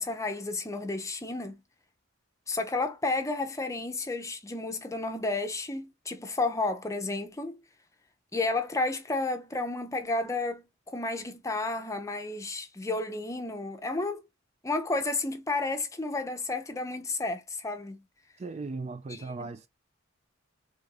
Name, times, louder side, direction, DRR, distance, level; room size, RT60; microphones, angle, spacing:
voice 1, 0.0-1.6 2.5-7.6 8.3-14.2 14.6-18.0 19.1-19.5, left 2 dB, 15° left, 0.6 m, -32 dB
voice 2, 18.4-19.7, right 3 dB, 35° right, 0.3 m, -37 dB
3.6 x 2.6 x 4.6 m
head